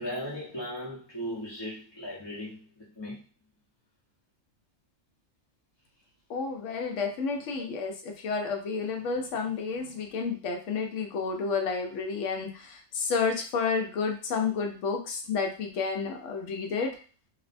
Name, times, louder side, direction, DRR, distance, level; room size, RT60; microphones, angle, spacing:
voice 1, 0.0-3.2 7.5-7.6, equal, 30° left, -9 dB, 0.5 m, -37 dB
voice 2, 6.3-16.9, left 5 dB, 70° left, 2 dB, 0.9 m, -30 dB
2.6 x 2.1 x 2.5 m, 0.38 s
omnidirectional pair, 1.4 m